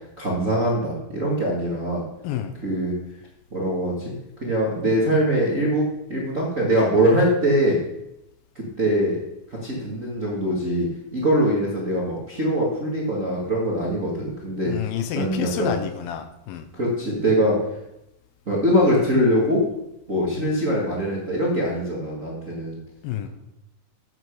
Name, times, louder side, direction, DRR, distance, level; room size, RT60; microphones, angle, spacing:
voice 1, 0.2-2.0 2.6-2.9 3.5-4.1 4.4-7.8 8.5-9.2 9.5-14.7 15.1-15.8 16.7-17.6 18.4-19.6 20.1-22.8, equal, 35° right, -5 dB, 1.3 m, -22 dB
voice 2, 2.2-2.6 14.7-16.7 23.0-23.3, left 10 dB, 80° left, 9 dB, 2.5 m, -29 dB
8.1 x 7.6 x 6.4 m, 0.86 s
omnidirectional pair, 4.3 m